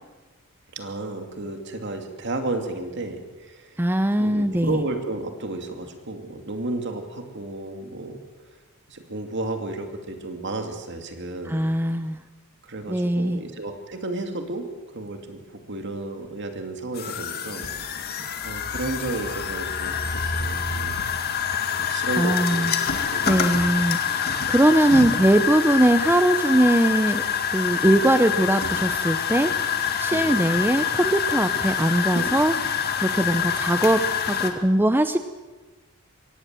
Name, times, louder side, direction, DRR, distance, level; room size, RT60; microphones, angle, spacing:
voice 1, 0.7-3.8 4.2-8.2 8.9-11.8 12.6-14.7 14.9-15.4 15.7-18.0 18.4-21.4 21.8-22.7 23.1-23.4 30.1-30.5, right 2 dB, 55° right, 5 dB, 2.6 m, -32 dB
voice 2, 3.8-4.8 11.5-12.2 12.9-13.4 22.2-22.9 23.2-27.2 27.5-32.6 33.0-35.2, right 1 dB, 10° right, 9 dB, 0.7 m, -21 dB
sound 1, 16.9-34.5, left 7 dB, 45° left, 1.9 m, -26 dB
23.0 x 17.5 x 7.6 m, 1.3 s
head